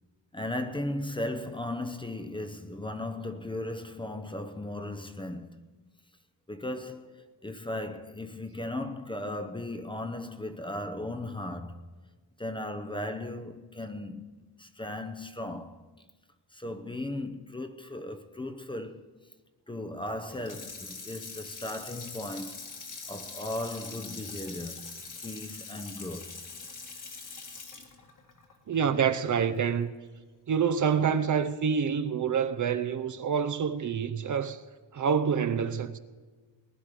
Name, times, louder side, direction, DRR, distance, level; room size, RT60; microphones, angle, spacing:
voice 1, 0.3-5.6 6.5-11.9 12.4-15.9 16.5-19.3 19.7-22.6 23.1-24.9 25.2-26.4 31.0-31.1, left 1 dB, 10° left, 0.7 m, -37 dB
Water tap faucet / Sink (filling or washing), 20.3-29.5 29.9-30.0, left 4 dB, 45° left, 2.0 m, -43 dB
voice 2, 28.7-29.9 30.5-34.6 34.9-36.0, right 7 dB, 45° right, 0.7 m, -27 dB
19.5 x 10.5 x 4.9 m
cardioid pair, 125°, 43 cm